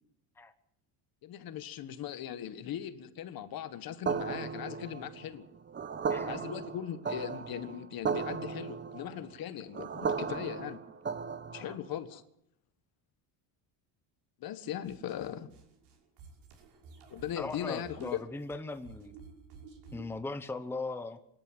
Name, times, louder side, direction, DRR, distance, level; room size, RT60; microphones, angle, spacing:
voice 1, 1.2-5.5 6.2-10.8 11.5-12.2 14.4-15.5 17.1-18.2, left 10 dB, 50° left, 12 dB, 1.7 m, -39 dB
sound 1, 4.1-11.9, right 5 dB, 25° right, 1.2 m, -36 dB
sound 2, 14.8-20.2, right 5 dB, 65° right, 6.2 m, -53 dB
voice 2, 17.4-19.1 19.9-21.2, left 3 dB, 5° left, 9 dB, 1.0 m, -39 dB
25.0 x 13.5 x 9.0 m, 0.76 s
cardioid pair, 150°, 45 cm